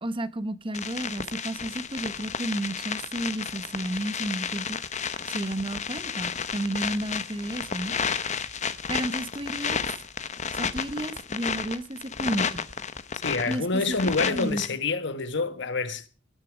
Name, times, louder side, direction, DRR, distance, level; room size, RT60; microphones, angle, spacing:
voice 1, 0.0-4.8 5.3-8.0 8.9-9.9 10.5-12.6 13.5-14.6, right 1 dB, 25° right, 1.0 m, -32 dB
sound 1, 0.7-14.7, left 6 dB, 40° left, 0.9 m, -32 dB
voice 2, 13.2-16.1, left 3 dB, 65° left, 1.4 m, -27 dB
19.0 x 10.5 x 4.9 m
head